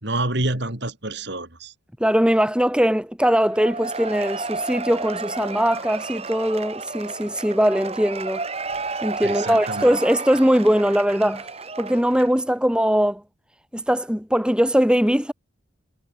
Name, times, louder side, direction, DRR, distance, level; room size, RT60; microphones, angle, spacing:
voice 1, 0.0-1.7 9.2-9.9, right 2 dB, 55° right, 4.0 m, -27 dB
voice 2, 2.0-8.4 9.0-11.5 11.8-13.2 13.7-15.3, equal, 5° right, 1.4 m, -20 dB
Cheering / Applause / Crowd, 3.5-12.4, right 4 dB, 30° right, 1.7 m, -32 dB
head